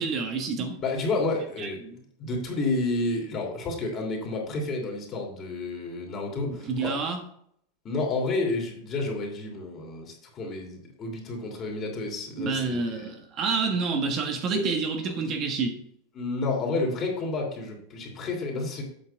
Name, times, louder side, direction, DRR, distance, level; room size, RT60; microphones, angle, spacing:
voice 1, 0.0-0.8 1.6-2.0 6.5-7.2 12.4-15.8, right 4 dB, 40° right, 3 dB, 1.4 m, -28 dB
voice 2, 0.8-1.8 2.2-6.9 7.8-13.0 14.5-14.7 16.1-18.8, left 3 dB, 35° left, 0 dB, 2.9 m, -30 dB
8.1 x 5.8 x 4.6 m, 0.69 s
supercardioid pair, 130°, 0 cm